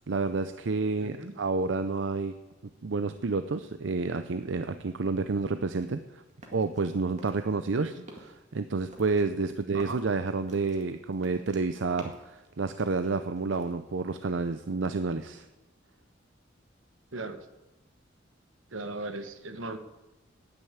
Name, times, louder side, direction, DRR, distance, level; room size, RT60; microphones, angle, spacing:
voice 1, 0.1-2.3 2.8-6.2 6.5-7.9 8.5-15.4, right 4 dB, 70° right, 10 dB, 0.6 m, -29 dB
voice 2, 1.0-1.3 7.8-8.0 9.7-10.0 17.1-17.5 18.7-19.8, right 2 dB, 90° right, 9 dB, 1.2 m, -38 dB
sound 1, 5.7-6.9 7.2-7.7 8.0-8.4 8.9-12.4 12.7-13.7, right 1 dB, 40° right, 2.0 m, -49 dB
9.9 x 9.1 x 8.8 m, 1.0 s
head